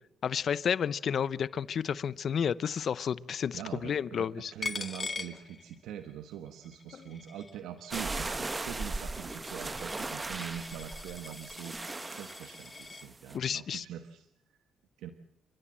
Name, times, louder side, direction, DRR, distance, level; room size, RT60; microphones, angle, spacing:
voice 1, 0.2-4.5 6.9-7.1 13.3-13.8, left 7 dB, 55° left, 18 dB, 0.8 m, -31 dB
voice 2, 3.5-11.8 12.1-14.3 15.0-15.1, right 10 dB, 85° right, 8 dB, 1.3 m, -43 dB
Coin (dropping), 4.6-6.1 6.5-13.1, left 4 dB, 30° left, 1.8 m, -43 dB
sound 1, 7.9-13.4, right 3 dB, 25° right, 1.4 m, -38 dB
29.5 x 14.5 x 7.5 m, 0.82 s
cardioid pair, 90°, 0 cm